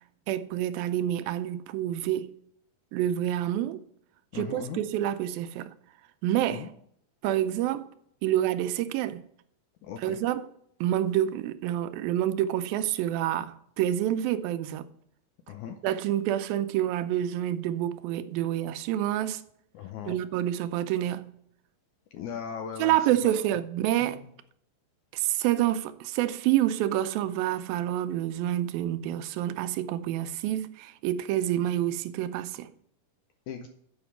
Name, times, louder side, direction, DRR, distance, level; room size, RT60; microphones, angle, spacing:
voice 1, 0.3-2.3 2.9-3.8 4.3-5.7 6.2-6.7 7.2-7.9 8.2-9.2 10.0-10.5 10.8-14.9 15.8-19.4 20.1-21.3 22.8-24.2 25.1-32.7, right 12 dB, 90° right, 2.4 m, -28 dB
voice 2, 4.3-4.8 6.5-6.7 9.8-10.2 15.5-15.8 19.7-20.2 22.1-22.9 23.2-23.3 24.0-24.1 33.5-33.7, left 7 dB, 80° left, 1.8 m, -38 dB
7.9 x 5.2 x 6.9 m
omnidirectional pair, 4.1 m